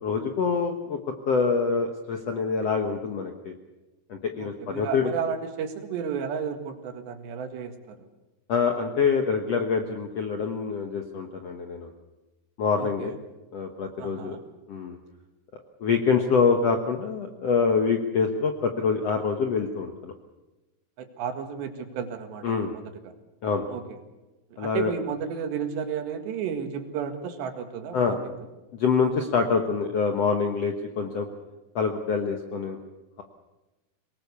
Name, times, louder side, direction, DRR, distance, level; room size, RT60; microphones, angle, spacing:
voice 1, 0.0-1.0 1.3-3.5 4.1-5.1 8.5-11.9 12.6-13.1 13.5-14.4 14.7-15.0 15.8-20.1 22.4-22.7 23.4-23.6 24.6-24.9 27.9-28.2 28.7-31.3 31.7-32.8, left 5 dB, 70° left, 4 dB, 1.5 m, -25 dB
voice 2, 4.4-8.1 12.8-13.2 14.0-14.4 21.0-23.1 23.7-24.0 24.5-28.5, right 7 dB, 90° right, 6 dB, 4.1 m, -33 dB
23.5 x 20.5 x 6.9 m, 1.1 s
omnidirectional pair, 4.8 m